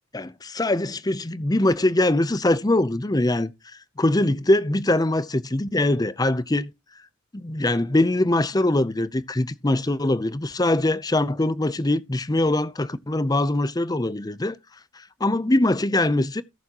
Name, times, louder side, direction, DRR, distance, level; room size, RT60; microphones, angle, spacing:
voice 1, 0.1-3.5 4.0-6.7 7.3-14.6 15.2-16.4, left 1 dB, 20° left, 0.6 m, -22 dB
18.0 x 6.9 x 2.9 m
head